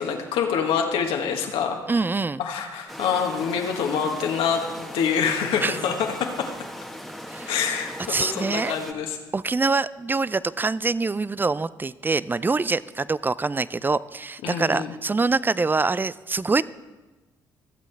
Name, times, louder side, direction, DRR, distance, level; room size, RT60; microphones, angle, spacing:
voice 1, 0.0-1.8 2.4-6.5 7.5-9.2 14.4-14.9, left 7 dB, 70° left, 3 dB, 1.6 m, -26 dB
voice 2, 1.9-2.4 5.6-5.8 7.3-7.6 8.1-8.8 9.3-16.6, right 3 dB, 20° right, 18 dB, 0.5 m, -25 dB
sound 1, 2.9-8.9, equal, ahead, 1.4 m, -38 dB
25.0 x 8.3 x 3.5 m, 1.1 s
hypercardioid pair, 50°, 10 cm